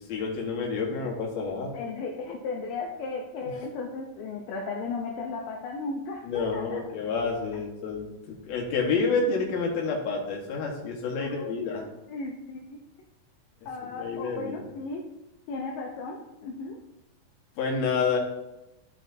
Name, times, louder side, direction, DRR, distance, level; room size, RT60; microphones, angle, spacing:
voice 1, 0.0-1.8 6.2-11.8 13.9-14.6 17.6-18.2, left 4 dB, 60° left, -1 dB, 2.3 m, -29 dB
voice 2, 1.7-6.8 11.2-12.8 13.7-15.0 15.5-16.8, left 3 dB, 80° left, 0 dB, 2.3 m, -35 dB
13.5 x 4.5 x 2.7 m, 0.95 s
omnidirectional pair, 4.1 m